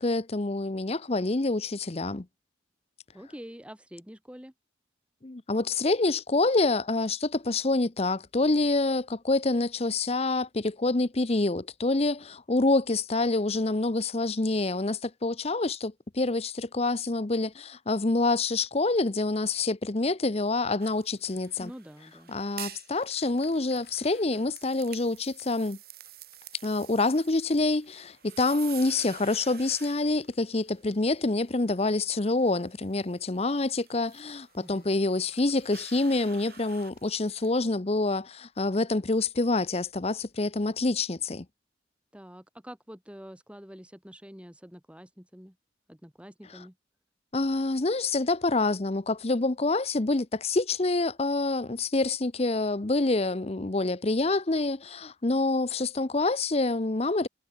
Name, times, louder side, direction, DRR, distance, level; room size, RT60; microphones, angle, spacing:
voice 1, 0.0-2.2 5.2-21.7 22.3-25.8 26.6-41.4 47.3-57.3, left 2 dB, 35° left, 0.8 m, -27 dB
voice 2, 3.1-4.5 21.6-22.3 34.6-34.9 42.1-45.6 45.9-46.7, equal, 5° right, 2.0 m, -46 dB
sound 1, 20.8-37.5, right 11 dB, 55° right, 7.4 m, -49 dB
sound 2, 22.9-25.2 25.4-25.7 26.1-26.4 26.7-29.4 29.8-29.9 30.1-31.4 31.8-37.4 38.1-40.8, left 7 dB, 60° left, 7.5 m, -64 dB
head